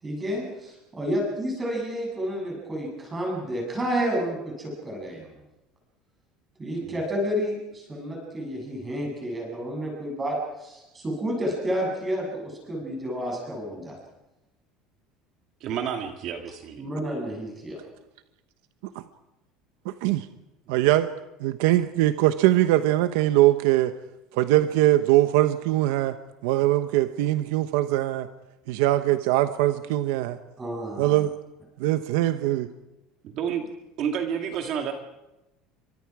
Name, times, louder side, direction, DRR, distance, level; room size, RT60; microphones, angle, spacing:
voice 1, 0.0-5.3 6.6-14.0 16.8-17.8 30.6-31.1, equal, 15° right, -1 dB, 8.0 m, -30 dB
voice 2, 15.6-16.8 20.7-20.8 33.2-33.6 34.0-34.9, right 8 dB, 45° right, 4 dB, 1.9 m, -30 dB
voice 3, 20.7-21.1 21.4-23.9 24.3-28.3 28.7-30.4 31.0-31.3 31.8-32.7, right 15 dB, 80° right, 10 dB, 1.0 m, -22 dB
29.5 x 24.5 x 4.9 m, 0.96 s
cardioid pair, 170°, 0 cm